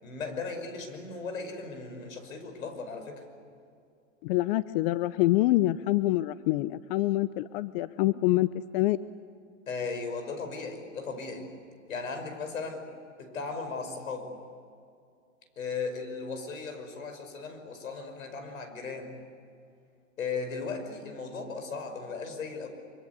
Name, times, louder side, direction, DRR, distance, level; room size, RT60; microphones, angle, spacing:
voice 1, 0.0-3.2 9.7-11.5 11.9-12.8 13.2-14.4 15.6-19.2 20.2-22.7, left 4 dB, 85° left, 6 dB, 5.5 m, -37 dB
voice 2, 4.2-9.0, left 16 dB, 45° left, 15 dB, 0.7 m, -26 dB
24.5 x 24.5 x 8.3 m, 2.4 s
hypercardioid pair, 115°, 40 cm